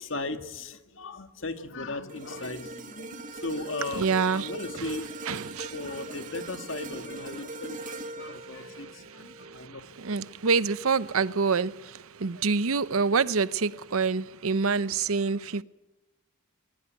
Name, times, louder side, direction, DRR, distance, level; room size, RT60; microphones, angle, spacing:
voice 1, 0.0-5.3 5.5-9.8, left 2 dB, 60° left, 1.9 m, -37 dB
sound 1, 2.1-10.4 10.9-11.1, right 2 dB, 40° right, 1.6 m, -41 dB
voice 2, 3.8-4.5 4.8-6.5 7.8-7.9 8.3-15.6, right 5 dB, 85° right, 0.8 m, -28 dB
21.0 x 19.0 x 9.3 m
head